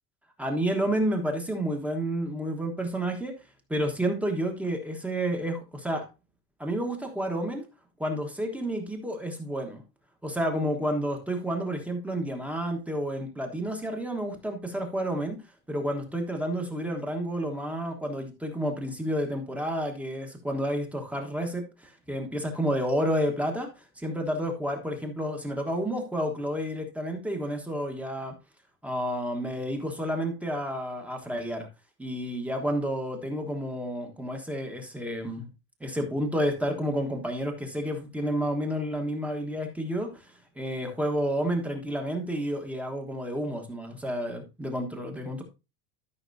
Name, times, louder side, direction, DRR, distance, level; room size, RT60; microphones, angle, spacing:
voice 1, 0.4-3.3 3.7-6.1 6.6-7.6 8.0-9.8 10.2-15.4 15.7-28.3 28.8-31.7 32.0-35.5 35.8-40.2 40.6-45.4, equal, 5° right, 3 dB, 1.3 m, -30 dB
13.0 x 5.9 x 2.6 m, 0.28 s
supercardioid pair, 165°, 38 cm